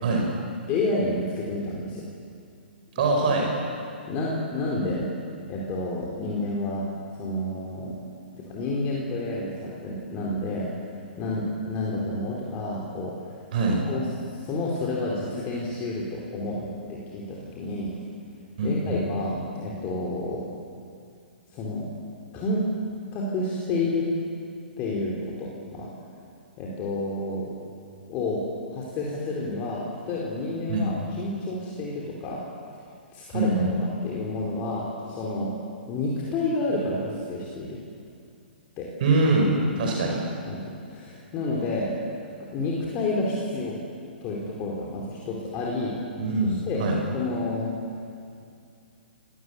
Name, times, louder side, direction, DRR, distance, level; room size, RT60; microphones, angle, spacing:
voice 1, 0.7-2.0 4.1-5.1 5.5-6.9 7.1-8.0 8.4-10.7 11.2-13.1 13.9-14.0 14.4-17.9 18.6-20.4 21.5-21.9 22.3-22.6 23.1-24.1 24.8-25.9 26.6-27.6 28.1-28.4 28.7-32.4 33.1-33.6 34.0-35.5 35.9-37.8 38.8-38.9 39.7-39.9 40.4-42.0 42.5-43.8 44.2-46.0 46.7-46.9 47.1-47.7, left 2 dB, 30° left, -4 dB, 4.3 m, -30 dB
voice 2, 3.0-3.5 13.5-13.8 18.6-19.0 30.7-30.9 33.3-33.7 39.0-40.2 46.2-47.0, right 2 dB, 50° right, 0 dB, 5.3 m, -23 dB
29.0 x 18.5 x 8.2 m, 2.4 s
figure-of-eight pair, 120°, 6 cm